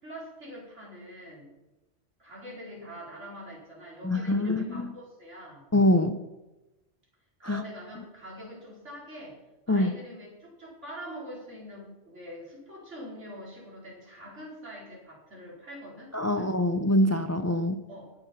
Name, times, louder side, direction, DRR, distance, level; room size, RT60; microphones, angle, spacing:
voice 1, 0.0-1.5 2.2-5.6 7.4-9.4 9.7-16.5 17.9-18.1, equal, 80° right, -4 dB, 5.0 m, -44 dB
voice 2, 4.0-4.9 5.7-6.2 7.4-7.6 9.7-9.9 16.1-17.8, left 1 dB, 25° left, 9 dB, 0.3 m, -24 dB
20.0 x 7.0 x 5.8 m, 1.0 s
omnidirectional pair, 1.2 m